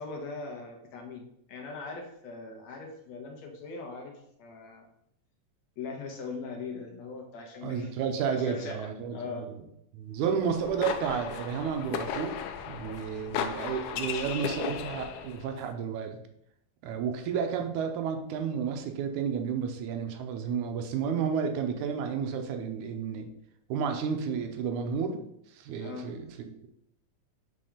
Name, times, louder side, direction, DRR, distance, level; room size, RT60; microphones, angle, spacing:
voice 1, 0.0-4.1 4.4-4.9 5.8-7.9 8.3-9.5 25.8-26.1, left 4 dB, 70° left, 2 dB, 2.1 m, -40 dB
voice 2, 7.6-9.6 9.9-16.2 16.8-23.3 23.7-25.2 25.5-26.7, right 6 dB, 80° right, 5 dB, 2.2 m, -32 dB
sound 1, 10.4-15.5, left 8 dB, 85° left, 2.1 m, -35 dB
5.9 x 4.2 x 5.0 m, 0.73 s
omnidirectional pair, 3.4 m